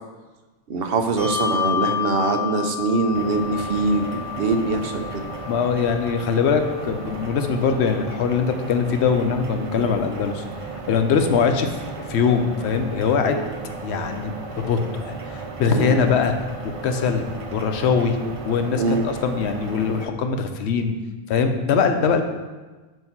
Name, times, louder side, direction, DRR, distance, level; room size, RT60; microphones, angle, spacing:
voice 1, 0.7-4.1 4.4-5.2 13.3-13.5 15.7-16.1 18.2-18.3 18.8-19.1, right 3 dB, 65° right, 5 dB, 0.8 m, -23 dB
Bell, 1.2-8.0, left 10 dB, 30° left, 1.9 m, -30 dB
sound 1, 3.1-20.0, right 3 dB, 40° right, 0.5 m, -35 dB
voice 2, 5.5-10.4 10.9-13.4 13.8-16.3 16.8-17.2 17.5-18.2 18.4-20.9 21.3-22.2, left 6 dB, 85° left, 6 dB, 0.9 m, -22 dB
7.8 x 2.7 x 5.8 m, 1.2 s
omnidirectional pair, 1.1 m